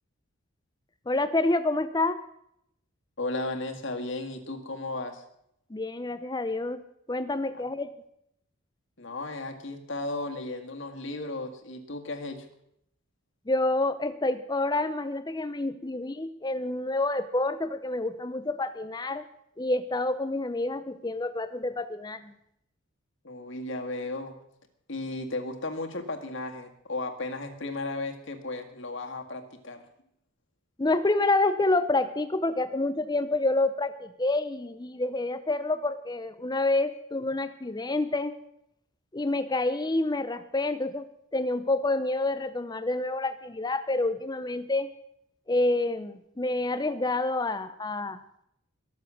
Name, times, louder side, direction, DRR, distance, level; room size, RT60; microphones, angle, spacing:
voice 1, 1.1-2.2 5.7-6.8 7.1-7.9 13.5-19.3 19.6-22.3 30.8-38.3 39.1-41.1 41.3-44.9 45.5-48.2, left 2 dB, 20° left, 12 dB, 0.5 m, -28 dB
voice 2, 3.2-5.2 9.0-12.5 23.2-24.4 24.9-29.8, left 2 dB, 60° left, 4 dB, 1.9 m, -35 dB
22.0 x 7.4 x 6.2 m, 0.75 s
head